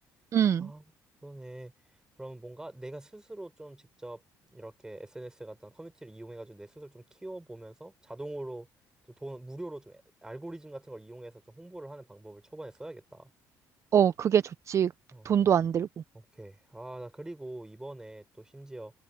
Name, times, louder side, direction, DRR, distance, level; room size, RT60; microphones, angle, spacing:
voice 1, 0.3-0.7 13.9-14.9 15.2-15.9, right 9 dB, 40° right, 0.5 m, -24 dB
voice 2, 1.2-1.7 2.2-4.2 4.5-8.7 9.2-13.3 15.1-15.5 16.1-18.9, right 1 dB, 10° right, 6.0 m, -43 dB
cardioid pair, 110°, 7 cm